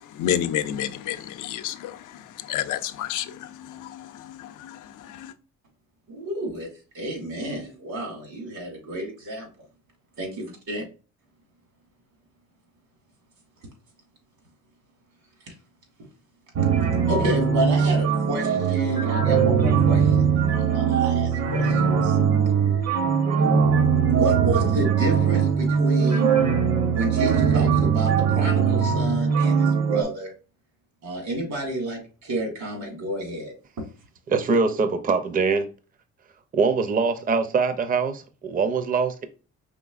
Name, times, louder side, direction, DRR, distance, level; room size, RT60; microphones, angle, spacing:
voice 1, 0.1-5.3, left 10 dB, 85° left, 0.5 m, -30 dB
voice 2, 6.1-6.7 6.9-9.5 10.2-10.3 10.7-10.8 15.5-15.6 17.1-22.2 24.1-26.4 26.9-30.3 31.0-33.5, right 1 dB, 75° right, 2.1 m, -30 dB
sound 1, 16.6-30.0, right 6 dB, 60° right, 0.9 m, -21 dB
voice 3, 34.3-35.7 36.5-39.3, right 4 dB, 30° right, 0.5 m, -23 dB
5.1 x 3.3 x 2.4 m
cardioid pair, 90°, 30 cm